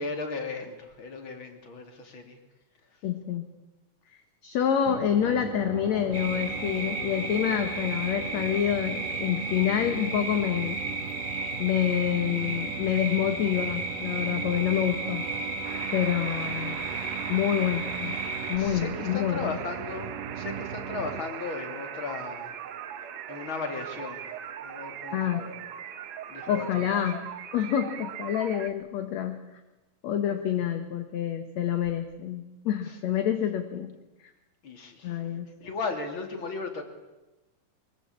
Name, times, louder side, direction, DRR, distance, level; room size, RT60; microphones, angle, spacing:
voice 1, 0.0-2.4 18.5-22.6 23.3-24.2 24.6-25.7 26.3-26.9 32.9-33.0 34.6-35.2 35.6-36.8, left 4 dB, 35° left, 5 dB, 3.5 m, -36 dB
voice 2, 3.0-3.4 4.4-10.8 11.6-15.2 15.9-16.8 17.3-18.1 18.5-19.6 25.1-25.5 26.5-27.3 27.5-29.4 30.0-33.9 35.0-35.5, left 10 dB, 60° left, 7 dB, 2.4 m, -27 dB
sound 1, 4.9-21.2, right 8 dB, 80° right, 2.9 m, -39 dB
sound 2, 6.1-18.6, right 2 dB, 10° left, 4.3 m, -34 dB
sound 3, 15.6-28.7, right 9 dB, 60° right, 2.1 m, -40 dB
23.5 x 22.0 x 8.6 m, 1.1 s
omnidirectional pair, 3.9 m